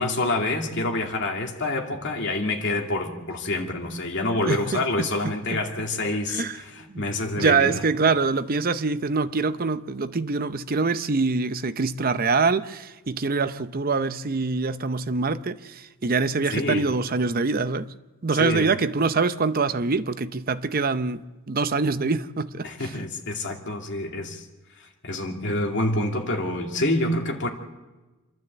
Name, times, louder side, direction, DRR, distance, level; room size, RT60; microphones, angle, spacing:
voice 1, 0.0-7.8 16.5-16.9 18.4-18.7 22.6-24.4 25.0-27.5, left 2 dB, 55° left, 2.6 m, -27 dB
voice 2, 4.4-5.6 6.3-6.6 6.9-17.9 18.2-22.9, right 4 dB, 40° right, 0.7 m, -25 dB
27.5 x 12.0 x 8.0 m
head